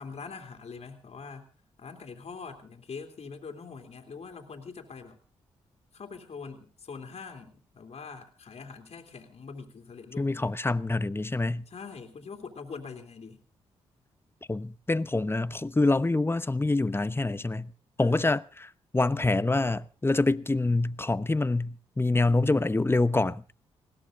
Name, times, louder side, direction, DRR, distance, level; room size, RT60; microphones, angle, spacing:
voice 1, 0.0-1.5 1.8-5.2 5.9-10.5 11.7-13.4 18.0-18.3, left 5 dB, 55° left, 2.9 m, -43 dB
voice 2, 10.2-11.7 14.5-17.7 18.0-23.4, left 2 dB, 20° left, 0.9 m, -26 dB
20.5 x 17.0 x 3.8 m
supercardioid pair, 45°, 13 cm